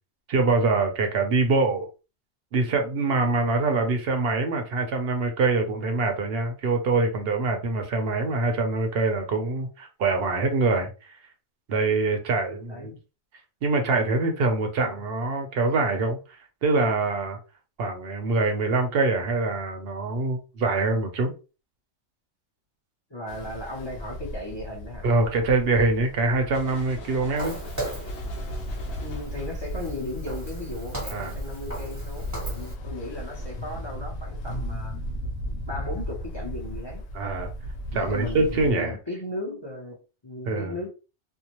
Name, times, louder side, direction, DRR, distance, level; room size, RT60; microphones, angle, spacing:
voice 1, 0.3-1.9 2.5-10.9 11.7-12.9 13.6-16.2 16.6-17.4 17.8-21.3 25.0-27.6 31.1-31.3 37.1-37.5 37.9-39.0 40.5-40.7, right 3 dB, 60° right, 0.8 m, -24 dB
voice 2, 23.1-25.1 29.0-34.9 35.7-37.0 37.9-40.9, left 1 dB, 25° left, 0.6 m, -36 dB
Ocean, 23.3-38.7, equal, 85° left, 1.0 m, -35 dB
sound 1, 26.5-29.7, left 3 dB, 65° left, 0.9 m, -44 dB
Walk footsteps, 27.4-32.7, right 1 dB, 15° right, 0.8 m, -38 dB
2.6 x 2.0 x 2.9 m
omnidirectional pair, 1.3 m